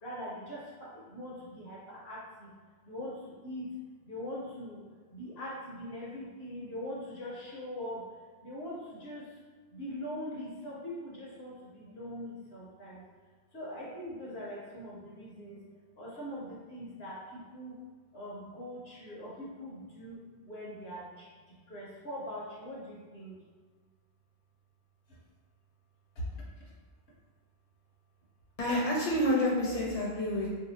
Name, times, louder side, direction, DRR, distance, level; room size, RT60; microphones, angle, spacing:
voice 1, 0.0-2.5 2.8-3.7 4.0-4.8 5.1-8.1 8.4-9.4 9.7-13.0 13.5-15.6 16.0-17.8 18.1-23.3 25.1-25.2 26.1-26.3, equal, 65° left, -6 dB, 1.0 m, -42 dB
voice 2, 28.6-30.5, left 1 dB, 35° left, -5 dB, 0.8 m, -28 dB
2.7 x 2.3 x 4.0 m, 1.5 s
omnidirectional pair, 1.2 m